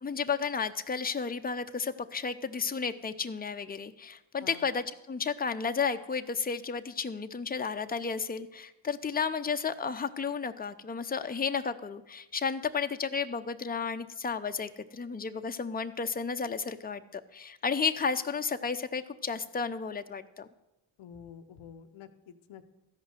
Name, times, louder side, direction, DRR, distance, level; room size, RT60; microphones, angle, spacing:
voice 1, 0.0-20.5, left 5 dB, 20° left, 8 dB, 0.7 m, -33 dB
voice 2, 21.0-22.7, left 8 dB, 85° left, 8 dB, 0.8 m, -49 dB
13.5 x 5.5 x 7.8 m, 0.94 s
cardioid pair, 50°, 47 cm